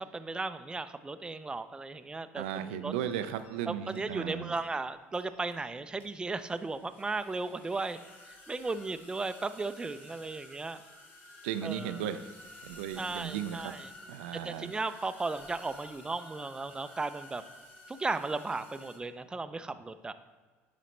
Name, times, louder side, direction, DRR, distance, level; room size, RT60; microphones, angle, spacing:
voice 1, 0.0-2.9 3.7-8.0 8.5-10.8 11.6-12.1 13.0-13.9 14.3-17.4 17.9-20.1, right 3 dB, 15° right, 11 dB, 0.4 m, -36 dB
voice 2, 2.4-4.5 11.4-12.3 12.6-13.7 14.1-14.7, right 10 dB, 90° right, 10 dB, 0.3 m, -36 dB
sound 1, 3.0-3.6 3.9-4.3 4.5-4.7 5.1-5.7 6.0-19.0, left 1 dB, 30° left, 1.6 m, -53 dB
10.0 x 4.1 x 3.2 m, 1.4 s
supercardioid pair, 85°, 6 cm